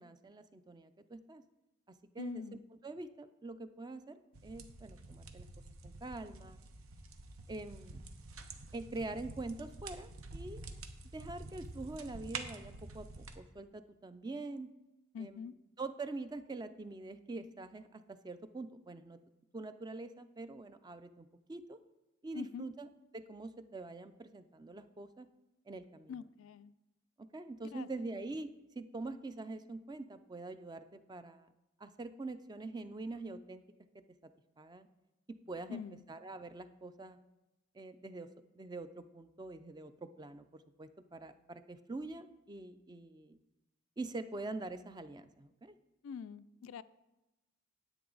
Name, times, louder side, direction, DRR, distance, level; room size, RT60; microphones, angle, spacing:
voice 1, 0.0-1.4 1.9-2.4 2.8-5.5 5.8-6.6 7.5-8.0 8.7-10.6 11.1-14.7 15.2-15.4 15.8-19.2 19.5-21.8 22.2-22.9 23.1-25.3 25.7-26.2 27.2-31.5 31.8-33.6 34.6-34.9 35.5-35.8 36.1-37.2 37.7-38.3 38.6-43.4 44.0-45.7, right 2 dB, 20° right, 11 dB, 0.4 m, -45 dB
voice 2, 2.2-2.6 15.1-15.5 22.3-22.7 26.1-26.7 27.7-27.9 35.7-36.0 46.0-46.8, left 7 dB, 70° left, 15 dB, 0.3 m, -44 dB
sound 1, 4.3-13.4, right 3 dB, 80° right, 0.9 m, -48 dB
10.0 x 8.7 x 3.9 m, 0.99 s
head